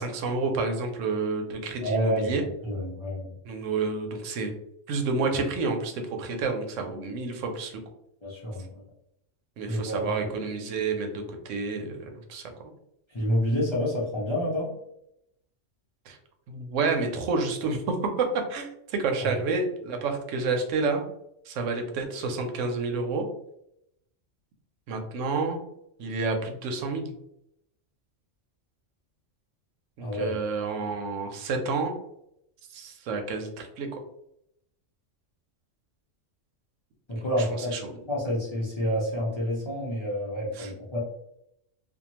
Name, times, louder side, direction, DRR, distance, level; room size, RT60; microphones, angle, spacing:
voice 1, 0.0-2.4 3.4-4.5 4.9-7.8 9.6-12.7 16.1-16.2 16.5-21.0 21.5-23.3 24.9-25.6 26.0-27.1 30.0-31.9 32.7-34.0 37.3-37.8 40.5-40.7, right 4 dB, 85° right, 4 dB, 0.9 m, -29 dB
voice 2, 1.8-2.3 2.6-3.3 8.2-8.8 9.7-10.3 13.1-14.7 19.2-19.3 30.0-30.4 37.1-37.8 38.1-41.0, equal, 35° left, -5 dB, 0.5 m, -28 dB
2.6 x 2.2 x 2.9 m, 0.78 s
omnidirectional pair, 1.3 m